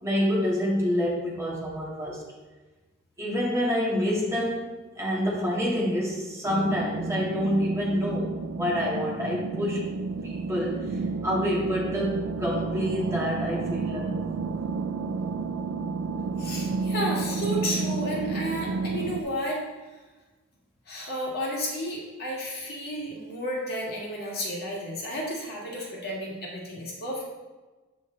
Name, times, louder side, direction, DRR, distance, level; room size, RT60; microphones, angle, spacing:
voice 1, 0.0-2.2 3.2-4.7 5.0-9.8 10.2-10.9 11.2-14.4, equal, 15° right, -5 dB, 1.9 m, -27 dB
sound 1, 6.5-19.2, right 4 dB, 85° right, 0.5 m, -31 dB
voice 2, 16.4-19.6 20.9-27.2, equal, 50° left, -4 dB, 2.0 m, -32 dB
7.9 x 5.1 x 3.9 m, 1.2 s
head